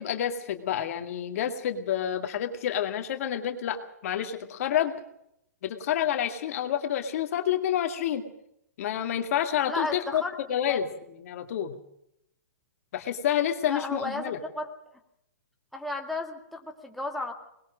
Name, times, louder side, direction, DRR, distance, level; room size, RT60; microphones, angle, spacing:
voice 1, 0.0-4.9 5.6-8.2 8.8-10.2 10.5-10.9 11.2-11.8 12.9-14.4, left 10 dB, 55° left, 6 dB, 2.2 m, -28 dB
voice 2, 9.7-10.3 10.7-10.8 13.7-14.7 15.7-17.3, left 2 dB, ahead, 1 dB, 2.1 m, -33 dB
20.5 x 20.5 x 6.3 m, 0.77 s
hypercardioid pair, 140°, 9 cm